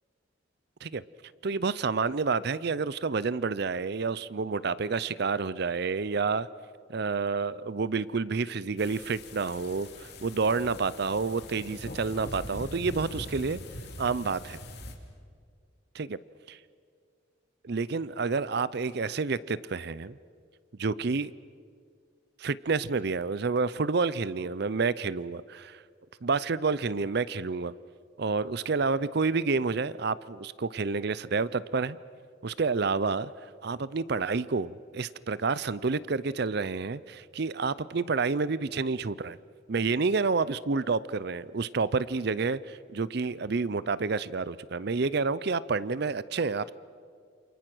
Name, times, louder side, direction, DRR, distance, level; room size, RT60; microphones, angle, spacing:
voice 1, 1.4-6.5 6.9-13.6 14.0-14.6 16.0-16.1 17.6-20.2 20.8-21.3 22.4-25.8 26.2-27.7 28.2-32.0 32.4-33.3 33.6-39.4 39.7-46.7, right 4 dB, 55° right, 18 dB, 0.6 m, -29 dB
sound 1, 8.8-15.0, left 1 dB, 55° left, 2.9 m, -42 dB
28.5 x 27.5 x 6.2 m, 2.1 s
head